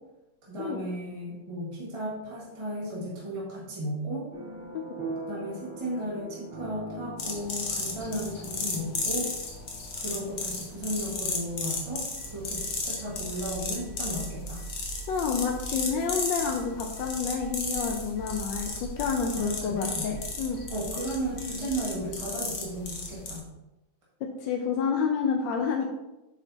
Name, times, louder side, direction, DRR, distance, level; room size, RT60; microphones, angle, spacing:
voice 1, 0.4-4.3 5.3-9.3 10.0-12.0 12.3-14.6 19.3-20.1 20.7-23.5, right 1 dB, 15° right, -6 dB, 1.6 m, -34 dB
sound 1, 4.3-15.1, right 2 dB, 45° right, 1.9 m, -43 dB
sound 2, 7.2-23.4, left 3 dB, 50° left, 1.3 m, -35 dB
sound 3, 12.2-22.2, right 6 dB, 80° right, 0.7 m, -44 dB
voice 2, 15.1-20.6 24.2-25.9, left 6 dB, 70° left, 2 dB, 1.3 m, -29 dB
7.9 x 6.3 x 2.8 m, 0.98 s
omnidirectional pair, 2.2 m